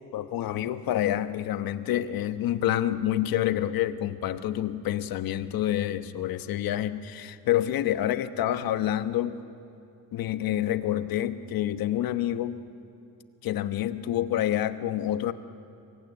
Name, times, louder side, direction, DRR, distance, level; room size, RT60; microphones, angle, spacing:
voice 1, 0.1-9.4 10.1-12.6 13.4-15.3, left 12 dB, 85° left, 11 dB, 1.1 m, -28 dB
27.0 x 23.0 x 9.5 m, 2.5 s
cardioid pair, 160°, 34 cm